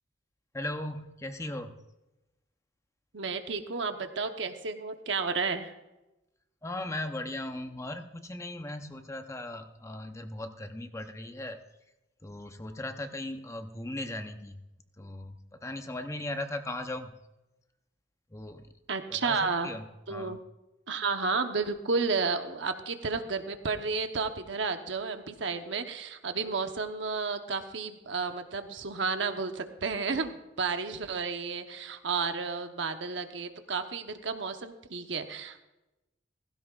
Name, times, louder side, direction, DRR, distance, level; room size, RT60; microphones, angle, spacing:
voice 1, 0.5-1.7 6.6-11.6 12.2-14.6 15.0-17.1 18.3-18.6 19.1-19.8 20.1-20.4, left 1 dB, 15° left, 7 dB, 0.7 m, -38 dB
voice 2, 3.1-5.8 18.9-19.7 20.1-20.4 20.9-35.6, right 4 dB, 75° right, 6 dB, 1.0 m, -32 dB
16.0 x 16.0 x 2.4 m, 0.98 s
head